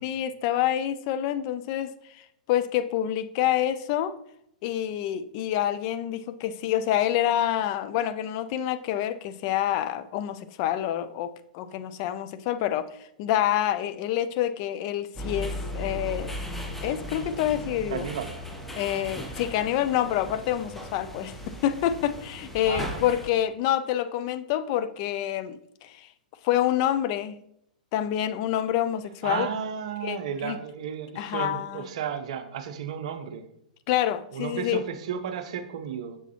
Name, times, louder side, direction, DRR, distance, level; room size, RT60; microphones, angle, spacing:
voice 1, 0.0-1.9 2.5-4.2 4.6-16.4 16.8-18.1 18.8-26.1 26.4-27.4 27.9-29.5 30.0-30.6 31.2-31.9 33.9-34.9, left 11 dB, 35° left, 0.4 m, -27 dB
sound 1, 15.2-23.3, left 1 dB, 5° left, 0.7 m, -37 dB
voice 2, 17.9-18.4 22.7-23.0 29.2-33.4 34.3-36.2, right 7 dB, 50° right, 0.6 m, -33 dB
6.9 x 5.9 x 2.8 m
figure-of-eight pair, 105°, 4 cm